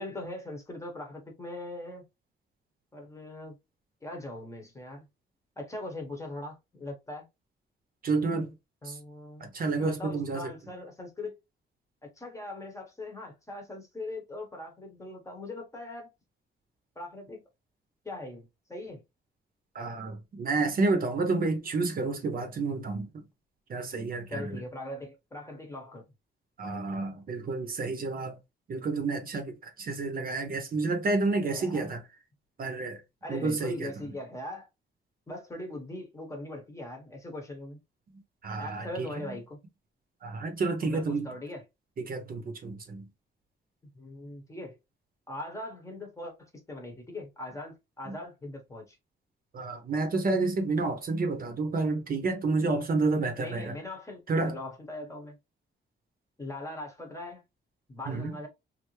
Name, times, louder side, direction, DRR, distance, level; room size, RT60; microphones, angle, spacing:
voice 1, 0.0-2.0 2.9-3.6 4.0-5.1 5.6-7.2 8.8-11.3 12.2-16.1 17.0-17.4 18.0-19.0 24.3-26.0 31.4-31.9 33.2-34.7 35.3-37.8 38.6-39.6 40.8-41.6 43.9-44.8 45.3-46.3 46.7-49.0 52.5-52.6 53.4-55.4 56.4-57.4 57.9-58.5, left 2 dB, 15° left, 1.0 m, -40 dB
voice 2, 8.0-8.5 8.8-9.0 9.4-10.5 19.7-23.2 23.7-24.6 26.6-28.4 28.7-32.0 32.6-33.0 33.3-33.9 38.4-39.1 40.2-41.3 42.0-43.1 48.1-48.2 49.5-53.7 54.3-54.5 58.1-58.3, right 3 dB, 45° right, 0.8 m, -30 dB
3.3 x 2.6 x 3.0 m
wide cardioid pair, 170°, 20 cm